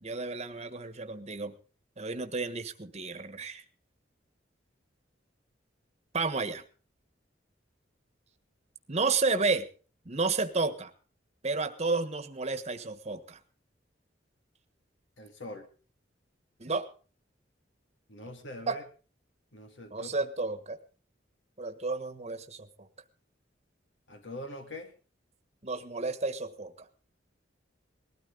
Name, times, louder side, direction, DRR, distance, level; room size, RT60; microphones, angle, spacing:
voice 1, 0.0-1.5 2.0-3.6 6.1-6.6 8.9-9.6 10.0-10.9 11.4-13.4 16.6-16.9 18.7-18.8 19.9-20.8 21.6-22.9 25.6-26.9, right 3 dB, 35° right, 8 dB, 1.4 m, -31 dB
voice 2, 15.2-15.7 18.1-18.8 19.5-20.2 24.1-24.9, left 1 dB, 70° left, 5 dB, 2.2 m, -43 dB
19.5 x 13.0 x 3.9 m, 0.37 s
head